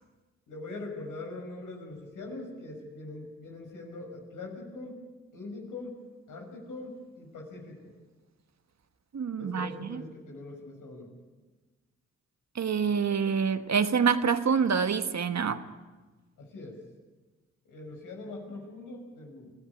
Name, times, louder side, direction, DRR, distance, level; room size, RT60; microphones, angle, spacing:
voice 1, 0.5-5.0 5.3-6.0 6.3-7.9 9.4-11.1 16.4-16.8 17.7-19.5, left 2 dB, 90° left, 1 dB, 6.2 m, -42 dB
voice 2, 9.1-10.0 12.5-15.6, right 6 dB, 60° right, 9 dB, 1.5 m, -26 dB
25.5 x 16.0 x 9.9 m, 1.3 s
supercardioid pair, 40°, 31 cm